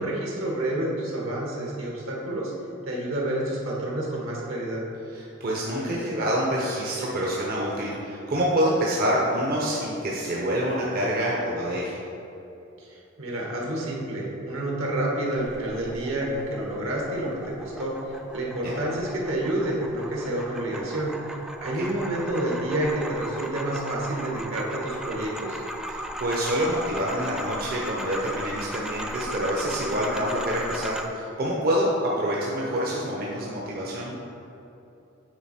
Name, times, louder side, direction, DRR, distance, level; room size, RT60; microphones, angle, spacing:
voice 1, 0.0-2.5 2.9-4.9 12.8-21.2 21.6-25.6, right 1 dB, 75° right, -3 dB, 1.5 m, -29 dB
voice 2, 5.1-12.0 18.6-18.8 21.8-21.9 25.9-34.1, equal, 50° right, -4 dB, 0.8 m, -27 dB
sound 1, 15.4-31.1, equal, 5° right, 0.3 m, -37 dB
9.2 x 4.2 x 4.3 m, 2.9 s
head